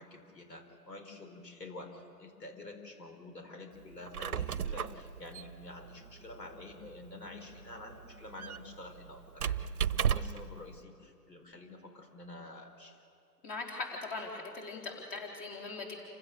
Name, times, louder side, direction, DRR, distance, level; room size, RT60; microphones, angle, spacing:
voice 1, 0.0-9.6 9.9-13.0, left 2 dB, 75° left, 4 dB, 5.1 m, -48 dB
Squeak, 3.9-10.5, right 8 dB, 60° right, 0.9 m, -36 dB
voice 2, 13.4-16.0, left 3 dB, 25° left, 0 dB, 4.0 m, -40 dB
29.5 x 16.0 x 7.0 m, 2.4 s
figure-of-eight pair, 130°, 49 cm